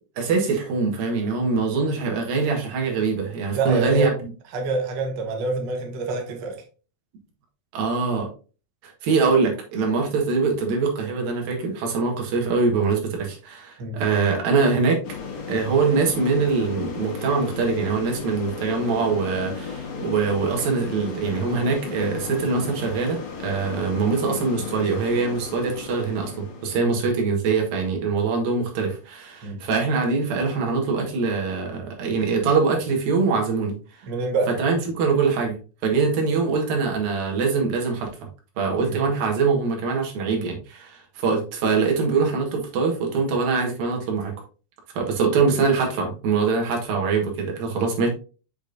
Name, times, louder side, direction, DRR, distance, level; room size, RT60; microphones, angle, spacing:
voice 1, 0.2-4.1 7.7-8.3 8.8-15.0 15.5-34.1 34.6-35.6 35.8-38.1 38.6-44.3 44.9-48.1, right 4 dB, 80° right, 1 dB, 3.3 m, -23 dB
voice 2, 3.5-4.1 4.5-6.6 13.8-14.0 26.8-27.0 29.4-29.6 34.1-34.5 38.8-39.0, right 3 dB, 65° right, 3 dB, 1.1 m, -26 dB
sound 1, 15.0-27.0, left 5 dB, 75° left, 3.2 m, -34 dB
7.8 x 5.1 x 2.6 m, 0.35 s
omnidirectional pair, 4.0 m